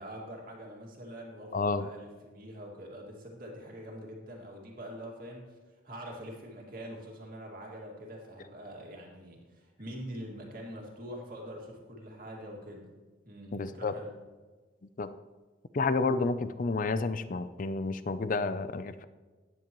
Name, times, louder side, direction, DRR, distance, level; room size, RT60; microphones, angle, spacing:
voice 1, 0.0-13.0 13.2-14.2, equal, 45° right, -1 dB, 2.2 m, -44 dB
voice 2, 1.5-1.9 13.5-13.9 15.0-15.1 15.7-19.0, left 3 dB, 40° left, 12 dB, 0.4 m, -30 dB
15.5 x 10.0 x 3.1 m, 1.3 s
head